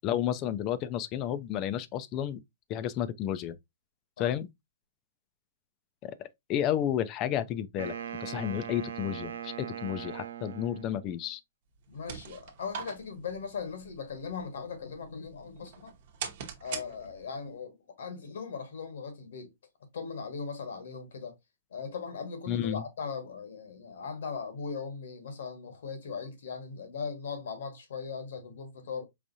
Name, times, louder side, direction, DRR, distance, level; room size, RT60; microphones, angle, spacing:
voice 1, 0.0-2.4 2.7-3.6 4.2-4.5 6.0-11.4 22.5-22.8, left 10 dB, 35° left, 0.5 m, -32 dB
Wind instrument woodwind instrument, 7.8-11.3, right 9 dB, 75° right, 0.5 m, -40 dB
sound 1, 11.7-17.5, right 7 dB, 55° right, 0.9 m, -44 dB
voice 2, 11.9-15.9 16.6-19.5 19.9-21.3 21.7-29.1, left 5 dB, 75° left, 1.4 m, -39 dB
4.8 x 2.5 x 2.6 m
hypercardioid pair, 135°, 0 cm